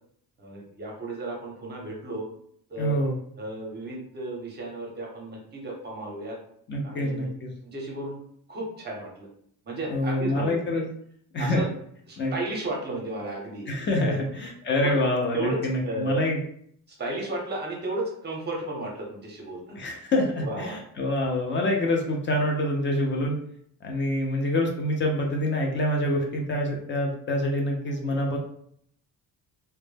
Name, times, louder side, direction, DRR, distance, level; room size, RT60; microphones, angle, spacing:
voice 1, 0.4-2.3 2.7-3.0 3.4-6.4 6.8-7.3 7.6-8.2 8.5-9.3 9.7-10.8 11.4-11.7 12.1-13.7 14.0-14.2 14.6-15.0 15.3-16.2 16.9-19.9 20.4-20.8, right 2 dB, 25° right, -1 dB, 0.6 m, -33 dB
voice 2, 2.8-3.2 6.7-7.5 9.9-10.8 11.3-11.6 12.2-12.3 13.7-16.4 19.8-23.4 23.8-28.4, left 1 dB, 30° left, 1 dB, 0.4 m, -26 dB
2.1 x 2.0 x 3.2 m, 0.65 s
cardioid pair, 170°, 40 cm